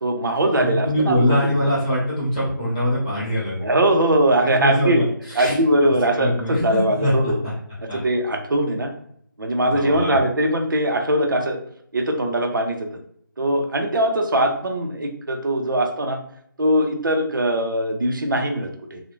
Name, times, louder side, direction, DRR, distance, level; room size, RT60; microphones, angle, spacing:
voice 1, 0.0-1.4 3.6-5.0 5.4-7.4 7.9-8.9 9.4-11.6 11.9-13.0 13.4-16.2 16.6-19.0, right 1 dB, 65° right, 4 dB, 0.5 m, -21 dB
voice 2, 0.6-3.7 4.5-5.6 6.1-7.5 7.9-8.0 9.6-10.2, left 1 dB, 20° left, -8 dB, 0.9 m, -23 dB
2.4 x 2.0 x 2.9 m, 0.67 s
figure-of-eight pair, 160°, 11 cm